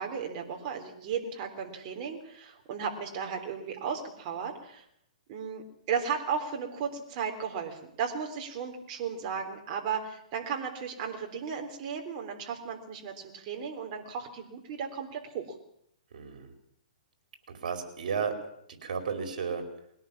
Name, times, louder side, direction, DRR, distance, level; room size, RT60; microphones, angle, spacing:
voice 1, 0.0-4.8 5.3-15.5, right 6 dB, 35° right, 2 dB, 3.6 m, -35 dB
voice 2, 16.1-16.5 17.5-18.4 18.8-19.7, right 6 dB, 70° right, 6 dB, 4.9 m, -33 dB
22.0 x 17.5 x 7.4 m, 0.75 s
hypercardioid pair, 150°, 4 cm